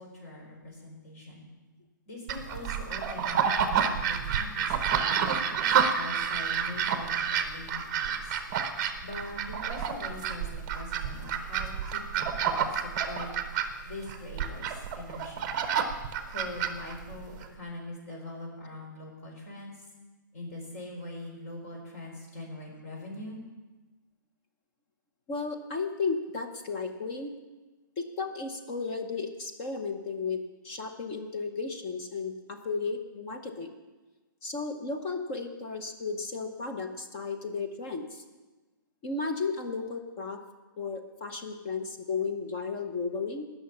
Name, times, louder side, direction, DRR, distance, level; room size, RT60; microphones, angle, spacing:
voice 1, 0.0-1.5 2.1-8.4 9.0-10.5 10.7-13.3 13.8-15.6 16.3-19.8 20.3-23.4, left 2 dB, 45° left, -1 dB, 4.4 m, -43 dB
sound 1, 2.3-17.5, right 7 dB, 25° right, 0.8 m, -29 dB
voice 2, 25.3-27.4 28.0-33.7 34.4-38.2 39.0-40.4 40.8-43.5, left 4 dB, 20° left, 5 dB, 0.8 m, -34 dB
19.0 x 6.6 x 6.0 m, 1.2 s
hypercardioid pair, 170°, 11 cm